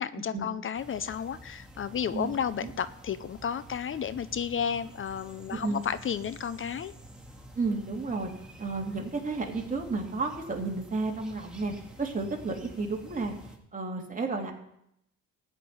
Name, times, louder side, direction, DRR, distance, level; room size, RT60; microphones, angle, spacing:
voice 1, 0.0-6.9, left 8 dB, 45° left, 15 dB, 0.6 m, -32 dB
sound 1, 0.7-13.6, equal, 5° right, 2.5 m, -49 dB
voice 2, 5.5-5.8 7.5-8.3 8.6-11.7 12.0-13.3 13.7-14.6, right 3 dB, 25° right, 0 dB, 2.9 m, -32 dB
15.0 x 5.9 x 9.5 m, 0.78 s
cardioid pair, 90°, 30 cm